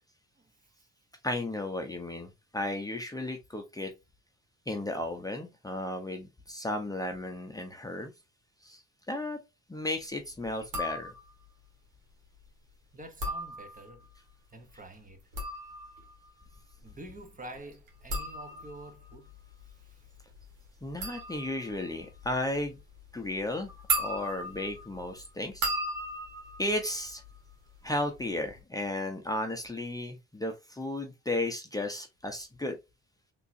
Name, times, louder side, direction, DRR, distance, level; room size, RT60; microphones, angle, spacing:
voice 1, 1.2-3.9 4.7-8.1 8.6-8.8 9.1-9.4 9.7-11.1 20.8-22.8 23.1-25.7 26.6-27.2 27.8-32.8, left 1 dB, 10° left, 0.7 m, -34 dB
sound 1, 10.6-11.5 13.0-14.1 15.1-27.8 28.1-28.6, right 1 dB, 90° right, 1.7 m, -37 dB
voice 2, 12.9-14.0 14.5-15.2 16.8-19.3 19.9-20.1, right 1 dB, 25° right, 1.0 m, -47 dB
3.6 x 3.0 x 2.7 m
cardioid pair, 90°, 30 cm